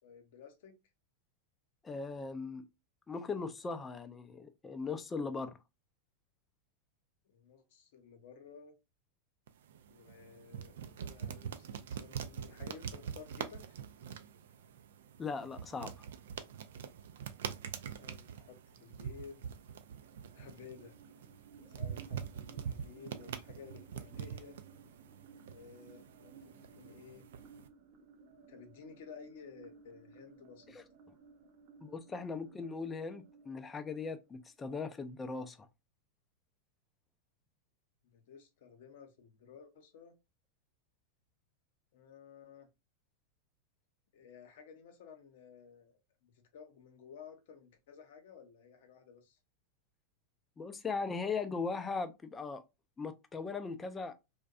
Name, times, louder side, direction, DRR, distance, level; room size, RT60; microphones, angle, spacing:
voice 1, 0.0-0.8 7.2-8.7 9.9-13.6 17.8-19.4 20.3-21.0 21.7-24.6 25.5-27.3 28.5-30.8 38.0-40.2 41.9-42.7 44.1-49.4, left 6 dB, 70° left, 0.7 m, -54 dB
voice 2, 1.8-2.6 3.1-5.5 15.2-15.9 31.8-35.7 50.6-52.6 53.0-54.2, left 4 dB, 20° left, 0.4 m, -39 dB
sound 1, 9.5-27.7, right 8 dB, 75° right, 0.3 m, -45 dB
sound 2, 19.9-34.9, right 5 dB, 50° right, 0.7 m, -59 dB
2.6 x 2.1 x 2.3 m
hypercardioid pair, 110°, 0 cm